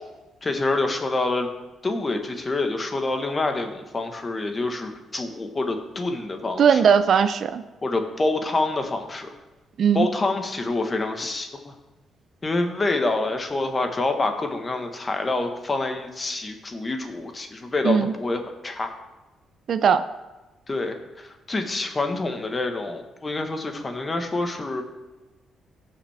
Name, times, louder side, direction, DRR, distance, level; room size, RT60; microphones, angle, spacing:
voice 1, 0.4-1.5 1.8-6.8 7.8-9.3 9.9-11.7 12.4-18.9 20.7-24.8, left 2 dB, 25° left, 5 dB, 1.3 m, -27 dB
voice 2, 6.6-7.6 9.8-10.1 17.8-18.1 19.7-20.1, right 7 dB, 60° right, 11 dB, 0.5 m, -19 dB
15.5 x 5.8 x 3.4 m, 1.1 s
cardioid pair, 90°, 0 cm